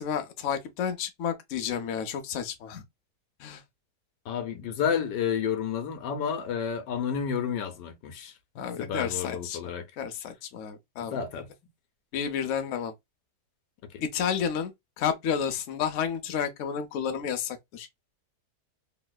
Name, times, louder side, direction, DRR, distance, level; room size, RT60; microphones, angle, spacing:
voice 1, 0.0-2.8 3.4-3.6 8.6-11.2 12.1-12.9 14.1-17.9, left 7 dB, 65° left, 0.8 m, -31 dB
voice 2, 4.3-9.9 11.0-11.5 13.9-14.0, left 7 dB, 85° left, 1.3 m, -31 dB
3.1 x 2.8 x 2.2 m
omnidirectional pair, 1.8 m